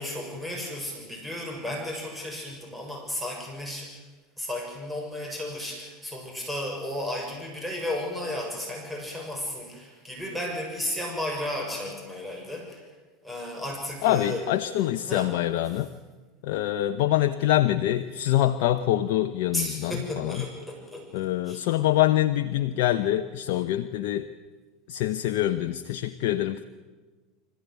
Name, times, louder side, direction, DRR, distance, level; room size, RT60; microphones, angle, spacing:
voice 1, 0.0-3.9 4.4-12.8 13.2-14.4 15.1-15.3 19.5-21.1 21.4-21.6, left 1 dB, ahead, 0 dB, 6.9 m, -34 dB
voice 2, 14.0-15.9 16.4-20.4 21.1-24.3 24.9-26.7, left 13 dB, 65° left, 7 dB, 0.9 m, -25 dB
25.5 x 15.0 x 9.4 m, 1.4 s
hypercardioid pair, 90°, 0 cm